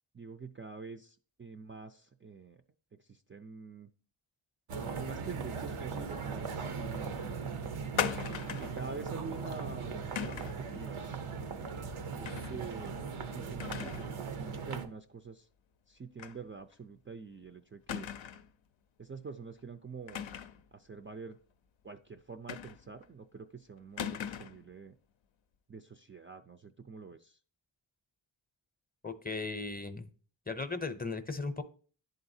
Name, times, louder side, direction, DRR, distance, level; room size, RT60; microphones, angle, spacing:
voice 1, 0.1-2.6 3.0-3.9 4.8-7.4 8.6-11.2 12.1-15.5 15.9-18.1 19.0-20.3 20.7-21.4 21.8-24.9 25.7-27.4, right 5 dB, 25° right, 6 dB, 0.4 m, -46 dB
sound 1, 4.7-14.9, right 5 dB, 85° right, 0.8 m, -39 dB
sound 2, 8.0-8.8 10.2-10.6 12.2-12.6 12.9-13.0 13.6-14.1 14.5-14.6 16.2-16.4 16.7-16.8 17.9-18.5 20.1-20.6 22.5-23.0 24.0-24.6, left 8 dB, 70° left, 0.6 m, -38 dB
voice 2, 29.0-30.1 30.5-31.6, left 3 dB, 20° left, 9 dB, 0.6 m, -37 dB
11.0 x 3.9 x 2.7 m, 0.42 s
wide cardioid pair, 55°, 48 cm